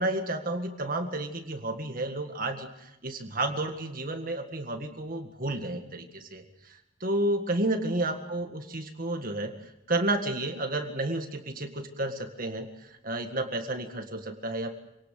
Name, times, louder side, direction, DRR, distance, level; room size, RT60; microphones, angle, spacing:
voice 1, 0.0-14.8, right 1 dB, 45° right, 5 dB, 1.8 m, -31 dB
27.0 x 19.0 x 7.7 m, 0.87 s
head